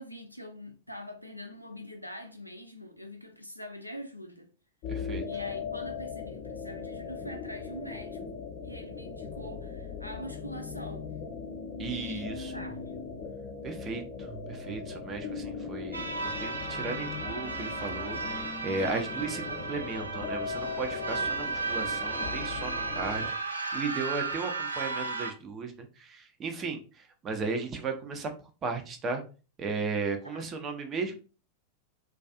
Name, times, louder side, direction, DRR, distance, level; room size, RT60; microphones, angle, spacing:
voice 1, 0.0-4.5 5.2-8.2 8.6-11.1 11.9-12.3 12.5-13.1 30.3-30.5, equal, 90° left, 0.4 m, -44 dB
sound 1, 4.8-23.3, left 5 dB, 45° left, 0.5 m, -39 dB
voice 2, 4.9-5.2 11.8-12.6 13.6-26.8 27.2-28.3 28.6-29.2 29.6-31.2, right 4 dB, 25° right, 0.5 m, -35 dB
sound 2, 15.9-25.3, right 4 dB, 85° right, 0.3 m, -34 dB
2.3 x 2.3 x 2.4 m
figure-of-eight pair, 90°, 0 cm